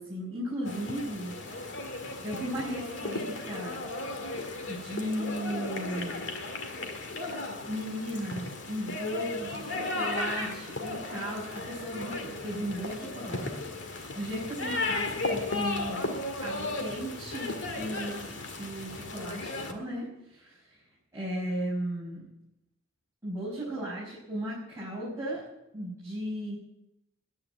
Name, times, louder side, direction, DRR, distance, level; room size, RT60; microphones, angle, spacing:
voice 1, 0.0-3.8 4.7-6.2 7.7-16.1 16.4-20.8 21.1-22.3 23.2-25.4 25.7-26.6, equal, 15° right, -8 dB, 5.4 m, -36 dB
sound 1, 0.6-19.7, left 2 dB, 65° left, 1.9 m, -35 dB
11.0 x 9.7 x 9.0 m, 0.84 s
head